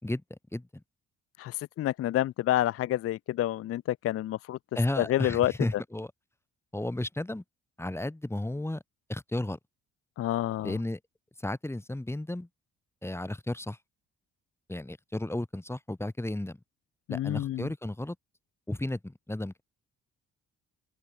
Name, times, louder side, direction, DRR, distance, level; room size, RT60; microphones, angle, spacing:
voice 1, 0.0-0.8 4.8-6.1 6.7-7.4 7.8-8.8 9.1-9.6 10.6-11.0 11.4-12.5 13.0-13.8 14.7-16.6 17.1-18.2 18.7-19.6, left 1 dB, 10° left, 2.2 m, -33 dB
voice 2, 1.4-4.6 5.0-5.5 10.2-10.7 17.1-17.7, left 13 dB, 50° left, 0.4 m, -28 dB
open air
cardioid pair, 90°, 30 cm